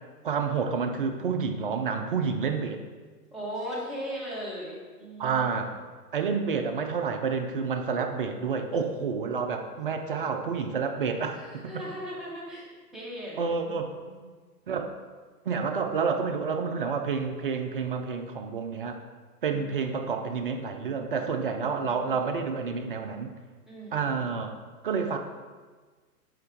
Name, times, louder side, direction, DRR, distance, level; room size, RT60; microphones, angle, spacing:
voice 1, 0.2-2.8 5.2-5.7 6.1-11.7 13.4-13.9 14.7-14.9 15.4-19.0 19.4-23.3 23.9-24.5 24.8-25.2, right 5 dB, 35° right, 5 dB, 0.4 m, -29 dB
voice 2, 3.3-5.6 11.3-14.4 23.7-24.2, equal, ahead, -8 dB, 1.0 m, -39 dB
5.6 x 5.2 x 3.5 m, 1.4 s
hypercardioid pair, 125°, 48 cm